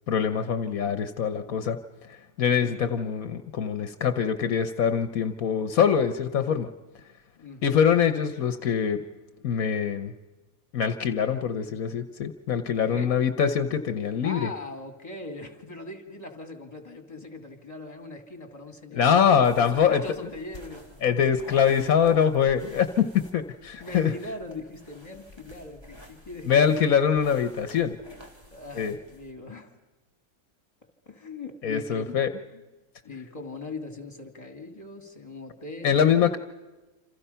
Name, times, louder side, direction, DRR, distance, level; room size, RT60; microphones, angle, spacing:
voice 1, 0.1-1.8 2.1-6.7 7.6-9.0 9.4-10.1 10.7-14.5 18.9-20.0 21.0-24.1 26.5-28.0 28.8-28.9 31.6-32.3 35.8-36.4, left 7 dB, 75° left, 10 dB, 1.4 m, -23 dB
voice 2, 7.4-7.8 12.8-13.2 14.0-19.1 19.6-21.3 22.0-22.2 23.8-26.9 28.5-29.8 31.1-32.2 32.5-32.6 33.0-36.4, left 2 dB, 25° left, 6 dB, 2.7 m, -40 dB
sound 1, 19.4-29.3, left 1 dB, 15° right, 3.3 m, -50 dB
27.5 x 27.5 x 5.7 m, 1.1 s
omnidirectional pair, 1.5 m